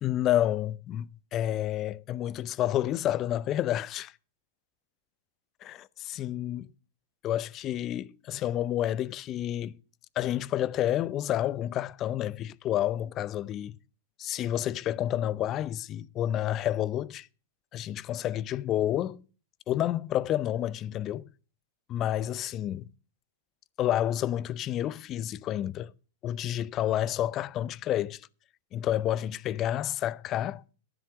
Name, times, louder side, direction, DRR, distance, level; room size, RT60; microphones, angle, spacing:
voice 1, 0.0-4.1 5.6-6.7 7.2-9.8 10.2-13.8 14.2-17.3 17.7-19.2 19.7-21.3 21.9-22.9 23.8-25.9 26.2-28.3 28.7-30.6, left 12 dB, 35° left, 0.6 m, -29 dB
11.5 x 10.0 x 4.8 m
hypercardioid pair, 120°, 0 cm